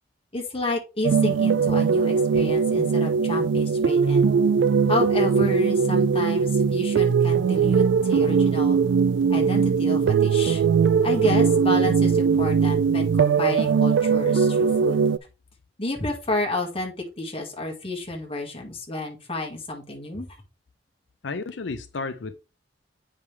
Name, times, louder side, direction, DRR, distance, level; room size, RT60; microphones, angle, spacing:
voice 1, 0.3-4.3 4.9-8.8 9.3-10.6 11.0-15.0 15.8-20.3, left 2 dB, 30° left, 2.0 m, -30 dB
sound 1, 1.0-15.2, right 6 dB, 90° right, 0.3 m, -20 dB
voice 2, 21.2-22.3, left 3 dB, 85° left, 0.6 m, -32 dB
8.3 x 5.0 x 3.4 m
head